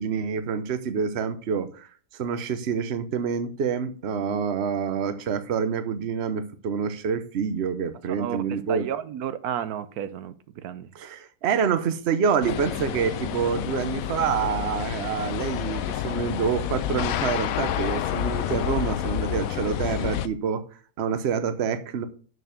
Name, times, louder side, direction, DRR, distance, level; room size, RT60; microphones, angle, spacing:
voice 1, 0.0-8.9 10.9-20.6 21.0-22.1, right 6 dB, 50° right, 1.0 m, -27 dB
voice 2, 8.1-10.9, right 9 dB, 80° right, 1.1 m, -32 dB
sound 1, 12.4-20.3, left 11 dB, 70° left, 1.0 m, -29 dB
6.6 x 6.5 x 6.6 m
omnidirectional pair, 1.6 m